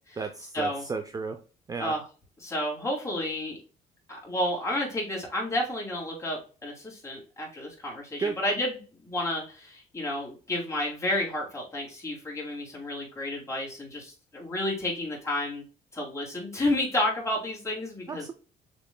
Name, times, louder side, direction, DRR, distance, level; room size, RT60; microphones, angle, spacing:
voice 1, 0.2-1.4 1.7-2.0 8.2-8.4 18.1-18.3, right 4 dB, 20° right, 6 dB, 0.4 m, -33 dB
voice 2, 2.4-3.6 4.1-8.8 9.0-15.6 15.9-18.2, left 1 dB, 15° left, -3 dB, 2.6 m, -31 dB
6.8 x 3.2 x 2.2 m, 0.35 s
cardioid pair, 110°, 17 cm